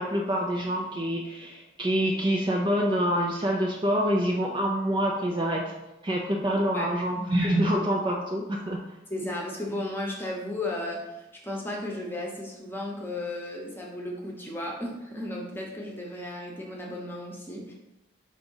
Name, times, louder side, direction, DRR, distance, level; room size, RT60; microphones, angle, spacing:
voice 1, 0.0-5.8 6.0-8.8, equal, 25° right, 0 dB, 0.5 m, -26 dB
voice 2, 9.1-17.7, left 1 dB, 10° left, -1 dB, 0.9 m, -34 dB
5.1 x 3.5 x 5.4 m, 0.98 s
head